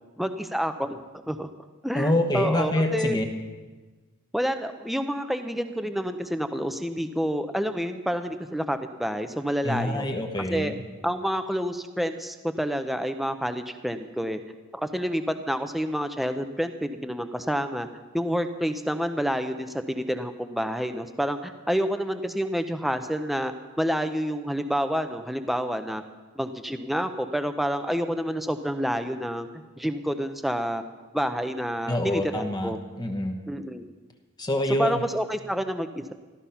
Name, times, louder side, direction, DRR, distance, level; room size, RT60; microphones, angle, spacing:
voice 1, 0.2-1.5 1.8-3.2 4.3-10.1 10.5-10.7 11.0-14.4 14.7-17.9 18.1-26.0 26.4-29.5 29.8-30.8 31.1-32.8 33.5-33.8 34.7-36.1, equal, ahead, 7 dB, 0.6 m, -28 dB
voice 2, 1.9-3.2 9.6-10.8 31.9-33.4 34.4-35.0, left 1 dB, 20° left, 4 dB, 1.1 m, -26 dB
13.5 x 13.5 x 5.7 m, 1.3 s
head